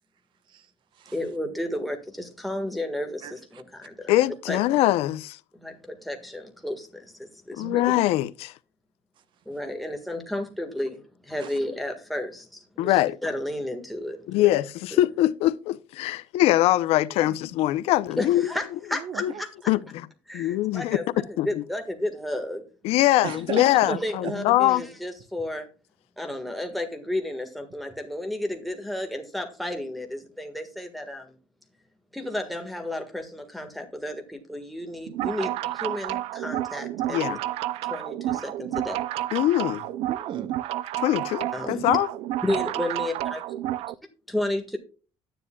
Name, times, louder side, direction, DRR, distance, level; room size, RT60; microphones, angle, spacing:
voice 1, 0.5-1.2 3.2-3.6 7.6-7.8 11.4-11.6 16.9-17.4 18.9-19.4 19.8-19.9 23.2-24.3 40.1-40.6, right 8 dB, 55° right, 0.9 m, -37 dB
voice 2, 1.1-3.9 4.5-4.6 5.6-5.7 6.0-6.9 7.5-7.8 9.5-11.0 11.3-12.4 12.8-12.9 13.2-14.6 14.9-15.0 18.2-19.7 20.3-21.0 21.3-22.6 23.3-23.4 24.0-25.6 26.2-31.2 32.1-35.5 35.8-37.4 37.9-39.0 41.5-41.9 42.4-43.4 44.3-44.8, left 1 dB, ahead, 1.6 m, -32 dB
voice 3, 4.1-5.4 7.5-8.5 12.8-13.2 14.3-18.5 19.2-19.3 19.7-19.8 20.3-21.0 21.4-21.6 22.8-24.8 37.1-37.4 39.3-39.9 41.0-42.1, left 15 dB, 90° left, 0.6 m, -22 dB
sound 1, 35.1-43.9, right 14 dB, 85° right, 0.5 m, -30 dB
12.5 x 9.9 x 2.3 m
cardioid pair, 160°, 10 cm